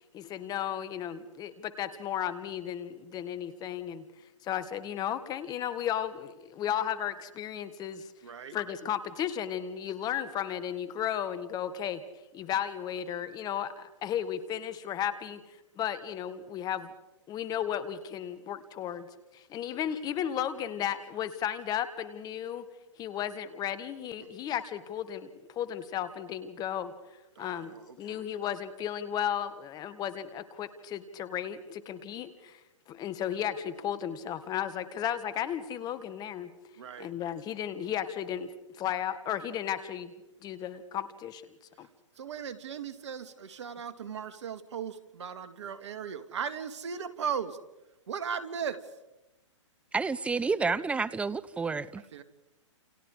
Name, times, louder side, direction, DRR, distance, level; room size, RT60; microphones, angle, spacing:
voice 1, 0.1-4.1 4.4-8.1 8.5-12.0 12.3-15.4 15.8-16.9 17.3-19.1 19.3-22.6 23.0-26.9 27.4-32.6 32.9-36.5 37.0-38.5 38.8-41.4 41.8-41.9, left 10 dB, 25° left, 1.8 m, -34 dB
voice 2, 8.2-8.6 24.2-24.4 27.4-28.2 36.8-37.1 41.8-41.9 42.2-47.6 48.1-48.8 52.1-52.2, right 7 dB, 65° right, 2.2 m, -37 dB
voice 3, 49.9-52.0, right 4 dB, 5° right, 0.8 m, -30 dB
30.0 x 29.0 x 5.0 m
hypercardioid pair, 125°, 16 cm